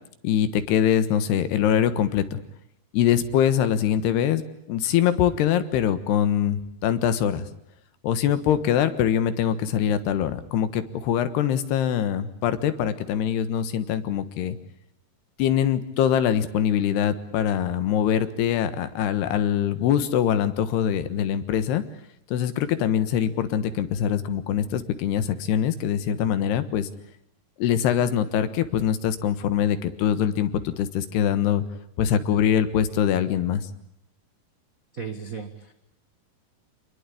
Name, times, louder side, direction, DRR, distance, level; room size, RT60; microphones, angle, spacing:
voice 1, 0.2-2.4 2.9-4.4 4.7-7.5 8.0-14.6 15.4-21.8 22.3-26.9 27.6-31.6 32.0-33.7, left 9 dB, 85° left, 12 dB, 3.5 m, -23 dB
voice 2, 34.9-35.7, right 6 dB, 80° right, 6 dB, 0.7 m, -35 dB
27.5 x 21.5 x 8.5 m, 0.76 s
omnidirectional pair, 4.6 m